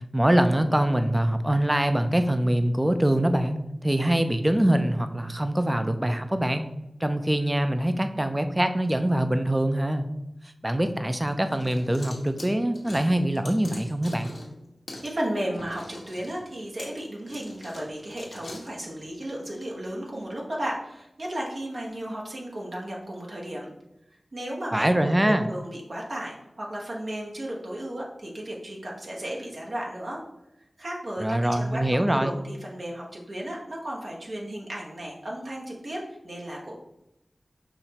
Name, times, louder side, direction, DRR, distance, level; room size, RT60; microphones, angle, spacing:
voice 1, 0.1-6.7 7.0-10.1 10.6-14.3 24.7-25.5 31.2-32.3, right 1 dB, 20° right, 8 dB, 0.4 m, -24 dB
sound 1, 11.3-14.6 14.9-15.1 15.5-18.7, left 1 dB, 85° left, 1.0 m, -43 dB
voice 2, 15.0-23.7 24.3-30.2 30.8-36.8, right 1 dB, 70° right, -3 dB, 1.1 m, -34 dB
5.7 x 3.2 x 2.9 m, 0.87 s
wide cardioid pair, 50°, 0 cm